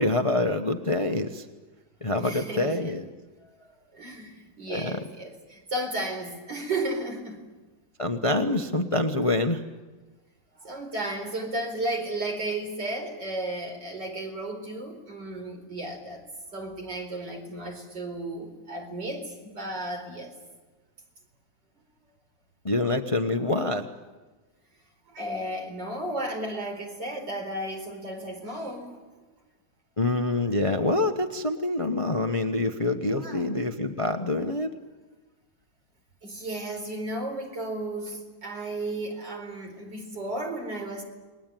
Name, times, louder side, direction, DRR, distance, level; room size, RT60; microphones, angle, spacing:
voice 1, 0.0-1.5 2.0-3.1 4.7-5.0 8.0-9.6 22.6-23.9 30.0-34.7, left 2 dB, 20° left, 6 dB, 1.0 m, -26 dB
voice 2, 2.2-2.8 3.4-3.5 3.9-7.4 10.6-16.3 16.5-20.3 25.1-29.2 33.1-33.4 36.2-41.0, right 1 dB, 65° right, 3 dB, 5.1 m, -34 dB
29.5 x 21.0 x 9.2 m, 1.3 s
omnidirectional pair, 2.0 m